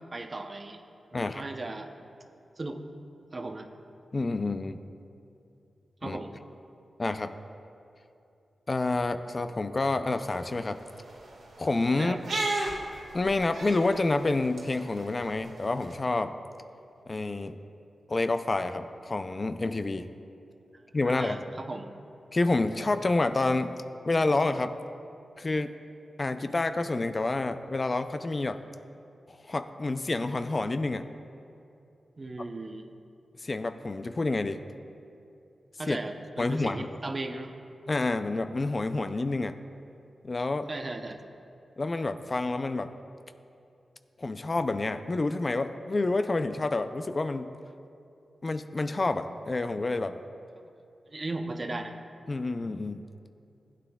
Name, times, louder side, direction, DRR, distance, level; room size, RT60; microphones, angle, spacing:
voice 1, 0.1-0.8 1.1-1.9 2.6-2.8 3.3-3.7 6.0-6.3 12.0-12.2 21.0-21.9 32.2-32.9 35.8-37.5 40.7-41.2 51.1-51.9, right 2 dB, 40° right, 5 dB, 0.7 m, -36 dB
voice 2, 4.1-4.8 6.0-6.2 7.0-7.3 8.7-10.8 11.6-12.2 13.1-16.4 17.1-17.6 18.1-20.1 20.9-21.4 22.3-24.7 25.4-25.7 26.2-28.6 29.3-31.0 33.4-34.6 35.9-36.0 36.4-36.9 37.9-39.5 40.2-40.7 41.8-42.9 44.2-47.5 48.4-50.2 52.3-53.0, left 2 dB, 40° left, 9 dB, 0.4 m, -28 dB
sound 1, 10.2-15.9, right 2 dB, 90° right, 1.5 m, -37 dB
15.5 x 9.1 x 2.3 m, 2.6 s
cardioid pair, 60°, 0 cm